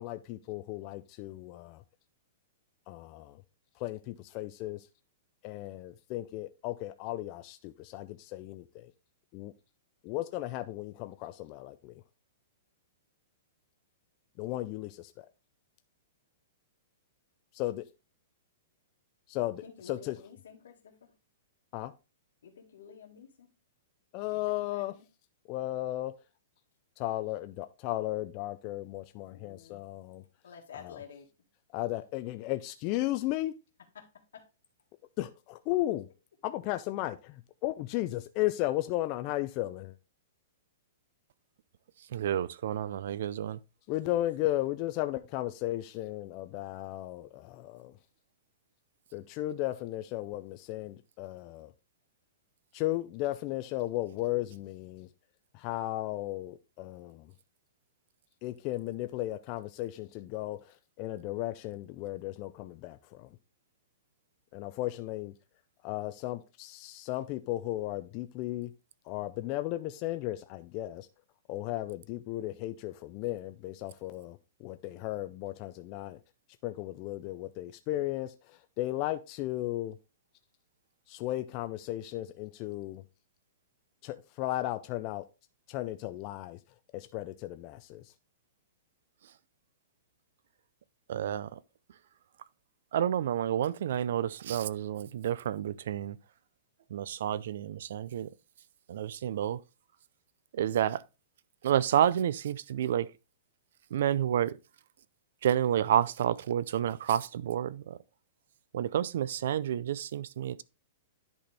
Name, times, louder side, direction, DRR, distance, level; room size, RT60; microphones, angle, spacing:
voice 1, 0.0-1.8 2.9-3.4 3.8-4.9 5.4-8.9 9.3-9.5 10.0-12.0 14.4-15.3 17.5-17.9 19.3-20.2 21.7-21.9 24.1-24.9 25.5-26.1 27.0-30.2 30.7-31.0 31.7-33.5 35.2-36.1 36.4-40.0 43.9-47.9 49.1-51.7 52.7-55.1 55.5-57.3 58.4-63.3 64.5-65.3 65.8-68.7 69.1-71.1 71.5-76.2 76.6-80.0 81.1-83.0 84.0-85.2 85.7-86.6 86.9-88.0, left 16 dB, 25° left, 0.3 m, -35 dB
voice 2, 19.6-21.1 22.4-23.5 24.3-25.0 29.3-29.8 30.4-31.3 34.0-34.1 34.3-34.4, left 7 dB, 80° left, 1.8 m, -50 dB
voice 3, 42.1-43.6 91.1-91.6 92.9-96.2 96.9-98.3 98.9-99.6 100.5-101.0 101.6-103.1 103.9-104.6 105.4-108.0 108.7-110.6, right 10 dB, 50° right, 0.3 m, -29 dB
10.5 x 4.2 x 3.3 m
hypercardioid pair, 180°, 0 cm